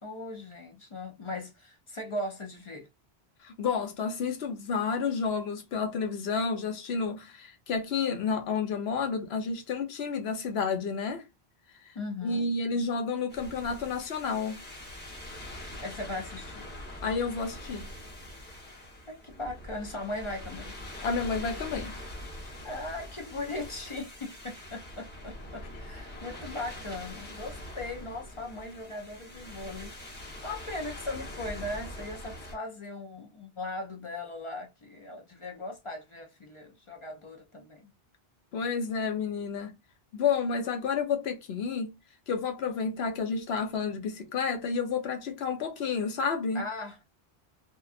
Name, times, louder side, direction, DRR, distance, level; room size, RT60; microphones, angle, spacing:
voice 1, 0.0-2.9 11.9-12.5 15.8-16.7 19.1-20.7 22.6-37.9 46.5-47.1, left 2 dB, 45° left, 0.4 m, -39 dB
voice 2, 3.4-11.2 12.2-14.6 17.0-17.9 21.0-22.0 38.5-39.7 40.1-42.0 42.3-46.6, left 5 dB, 75° left, 0.9 m, -30 dB
sound 1, 13.3-32.6, left 1 dB, 10° left, 0.9 m, -43 dB
2.8 x 2.3 x 2.4 m
omnidirectional pair, 1.1 m